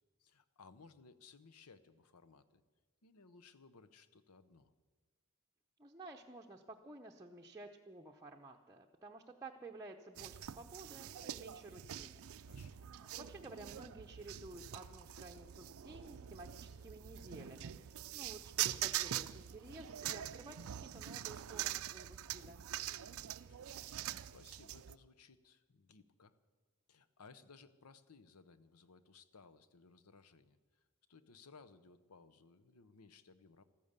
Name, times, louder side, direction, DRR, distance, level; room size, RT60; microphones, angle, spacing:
voice 1, 0.2-2.6 3.0-4.7 12.4-12.9 22.9-26.4 26.9-33.6, left 4 dB, 85° left, 13 dB, 0.9 m, -61 dB
voice 2, 5.8-12.3 12.5-12.6 13.2-22.6, right 2 dB, 15° right, -1 dB, 0.7 m, -53 dB
sound 1, 10.2-24.9, right 12 dB, 65° right, 0.4 m, -44 dB
14.5 x 14.0 x 6.7 m, 1.4 s
head